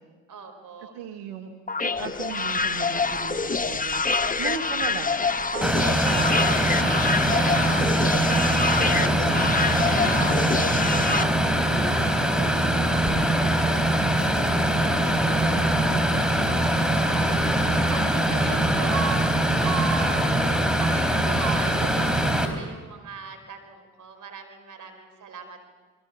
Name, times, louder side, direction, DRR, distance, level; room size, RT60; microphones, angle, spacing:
voice 1, 0.3-0.9 13.1-20.3 20.8-25.7, right 6 dB, 55° right, 5 dB, 5.1 m, -38 dB
voice 2, 0.8-1.5 1.8-4.0 4.4-7.0 7.3-12.8, right 8 dB, 85° right, 3 dB, 1.5 m, -37 dB
sound 1, 1.7-11.2, left 4 dB, 20° left, 1.3 m, -26 dB
sound 2, 5.6-22.5, right 1 dB, ahead, 4.2 m, -22 dB
28.0 x 21.5 x 6.9 m, 1.4 s
hypercardioid pair, 50°, 37 cm